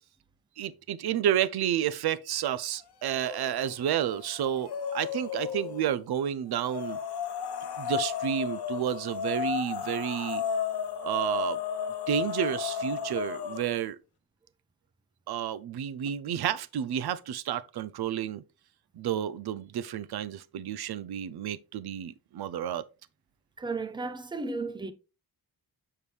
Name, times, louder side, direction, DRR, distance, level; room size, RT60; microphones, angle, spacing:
voice 1, 0.6-7.0 7.8-10.4 11.0-11.6 12.1-14.0 15.3-18.4 18.9-22.8, right 10 dB, 70° right, 0.5 m, -30 dB
sound 1, 3.1-3.7 4.1-5.9 6.6-13.8, left 8 dB, 80° left, 1.0 m, -34 dB
voice 2, 23.6-24.9, right 3 dB, 10° right, 0.4 m, -34 dB
7.0 x 4.6 x 3.2 m
wide cardioid pair, 175°, 39 cm